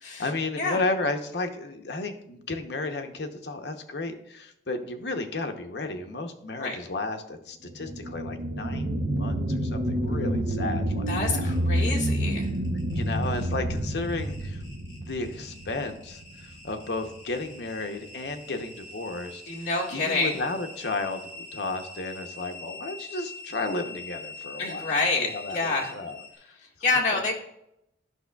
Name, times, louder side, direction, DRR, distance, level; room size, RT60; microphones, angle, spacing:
voice 1, 0.2-11.5 12.9-26.2 27.1-27.2, left 2 dB, 75° left, 6 dB, 0.8 m, -33 dB
sound 1, 7.6-16.7 17.2-17.3, right 1 dB, 60° right, 0.8 m, -29 dB
voice 2, 11.1-12.5 19.5-20.3 24.6-25.9 26.8-27.3, left 3 dB, 40° left, -3 dB, 1.7 m, -27 dB
sound 2, 11.5-26.4, left 2 dB, 25° left, 2.3 m, -44 dB
11.0 x 5.8 x 2.3 m, 0.80 s
head